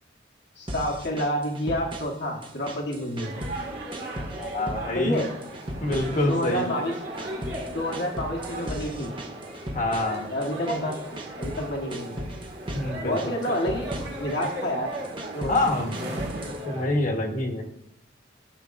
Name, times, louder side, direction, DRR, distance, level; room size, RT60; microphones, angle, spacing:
voice 1, 0.6-3.3 4.9-5.3 6.2-6.9 7.7-9.1 10.3-11.0 11.4-12.2 13.0-13.9 14.2-14.9 15.3-15.8, equal, 60° left, -1 dB, 1.3 m, -29 dB
sound 1, 0.7-2.2 2.4-3.7 3.9-4.9 5.2-6.6 6.9-11.6 11.9-12.9 13.2-14.5 14.9-16.6, right 1 dB, 30° right, 1.1 m, -37 dB
sound 2, 3.2-16.9, right 1 dB, 60° right, 2.0 m, -37 dB
voice 2, 4.3-5.2 5.8-6.8 9.7-10.3 12.7-13.3 15.5-15.9 16.6-17.6, left 2 dB, 45° left, 2 dB, 1.3 m, -26 dB
14.5 x 6.7 x 2.5 m, 0.76 s
head